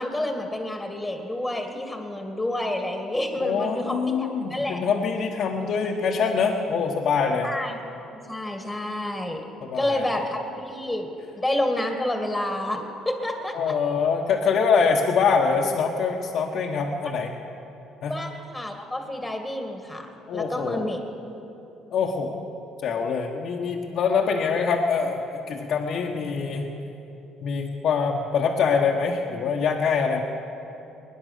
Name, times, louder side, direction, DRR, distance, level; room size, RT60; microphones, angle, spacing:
voice 1, 0.0-4.8 7.4-9.4 9.7-11.1 11.4-13.8 18.1-21.0, left 1 dB, 10° left, 4 dB, 2.2 m, -29 dB
voice 2, 3.4-7.5 9.6-10.2 13.5-17.3 18.0-18.2 20.3-20.9 21.9-22.4 22.8-26.7 27.4-30.2, left 5 dB, 65° left, -2 dB, 1.3 m, -24 dB
21.0 x 10.0 x 6.8 m, 3.0 s
supercardioid pair, 70°, 0 cm